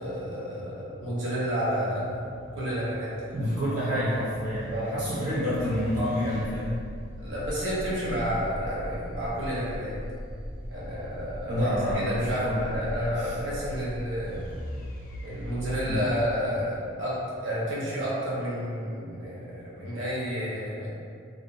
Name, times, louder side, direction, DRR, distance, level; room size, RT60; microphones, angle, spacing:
voice 1, 0.0-3.1 3.4-3.5 4.7-5.1 7.2-10.0 10.7-14.4 15.2-20.9, equal, 80° right, -8 dB, 0.8 m, -31 dB
sound 1, 2.0-17.2, equal, 40° left, 0.3 m, -40 dB
voice 2, 3.3-6.8 11.5-12.7 13.2-13.4 15.9-16.0, equal, 35° right, -9 dB, 0.4 m, -28 dB
2.6 x 2.2 x 2.3 m, 2.2 s
head